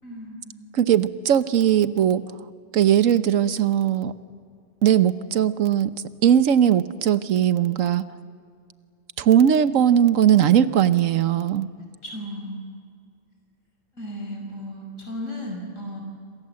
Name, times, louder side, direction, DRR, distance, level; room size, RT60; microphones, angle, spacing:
voice 1, 0.0-0.8 12.0-12.6 14.0-16.0, left 1 dB, 90° left, 1 dB, 5.8 m, -35 dB
voice 2, 0.7-2.2 2.7-4.1 4.8-5.9 6.2-8.0 9.2-11.7, right 9 dB, 85° right, 12 dB, 1.3 m, -19 dB
27.5 x 26.5 x 7.7 m, 2.3 s
omnidirectional pair, 1.3 m